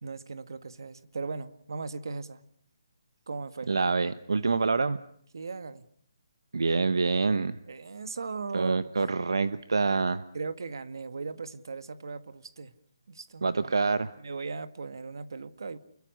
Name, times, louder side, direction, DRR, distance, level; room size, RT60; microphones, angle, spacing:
voice 1, 0.0-2.4 3.3-3.7 5.3-5.9 7.7-8.8 10.3-12.7 13.1-13.8 14.2-15.8, right 4 dB, 65° right, 12 dB, 2.0 m, -38 dB
voice 2, 3.7-5.0 6.5-7.6 8.5-10.2 13.4-14.1, right 4 dB, 80° right, 13 dB, 1.2 m, -26 dB
30.0 x 22.5 x 6.6 m, 0.65 s
hypercardioid pair, 170°, 2 cm